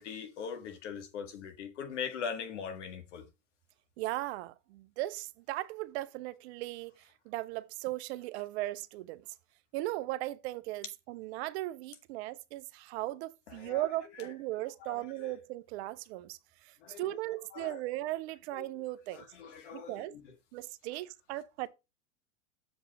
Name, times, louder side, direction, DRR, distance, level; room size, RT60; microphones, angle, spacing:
voice 1, 0.0-3.2 13.6-13.8 14.8-15.3 16.8-17.0 17.5-17.8 18.5-18.7 19.1-19.9, left 6 dB, 75° left, 1.8 m, -41 dB
voice 2, 4.0-9.3 9.7-19.3 19.7-20.2 20.5-21.7, right 17 dB, 60° right, 0.7 m, -37 dB
7.1 x 5.4 x 4.1 m
hypercardioid pair, 95°, 36 cm